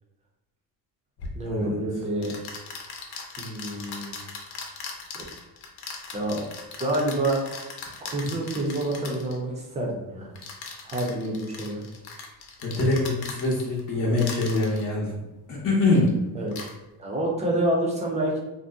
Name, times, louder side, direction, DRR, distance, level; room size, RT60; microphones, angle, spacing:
sound 1, 1.2-1.4 2.2-9.4 10.4-13.8 14.2-14.8 15.9-16.1 16.5-16.7, left 4 dB, 75° left, 0.7 m, -39 dB
voice 1, 1.3-2.4 3.4-4.1 5.1-5.2 6.1-6.4 6.8-7.4 8.0-10.3 10.8-11.8 16.3-16.5 17.0-18.4, right 1 dB, 20° right, -2 dB, 0.5 m, -28 dB
voice 2, 12.6-15.2 15.5-16.2, left 2 dB, 40° left, -6 dB, 0.7 m, -24 dB
2.6 x 2.1 x 3.5 m, 1.0 s
cardioid pair, 160°, 39 cm